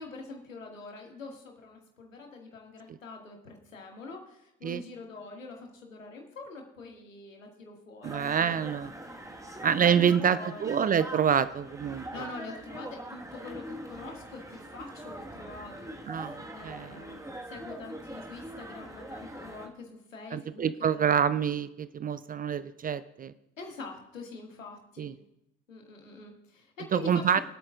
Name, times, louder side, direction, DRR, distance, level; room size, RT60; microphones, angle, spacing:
voice 1, 0.0-8.8 9.9-10.7 12.1-17.2 17.5-21.1 23.6-25.1 25.7-27.2, left 3 dB, 85° left, 1 dB, 1.9 m, -45 dB
sound 1, 8.0-19.7, right 1 dB, 10° right, 1.5 m, -43 dB
voice 2, 8.0-8.9 9.6-12.1 16.1-17.0 20.3-23.3 25.0-25.1 26.9-27.4, right 8 dB, 25° right, 15 dB, 0.4 m, -27 dB
24.5 x 8.5 x 2.4 m, 0.83 s
figure-of-eight pair, 60°, 38 cm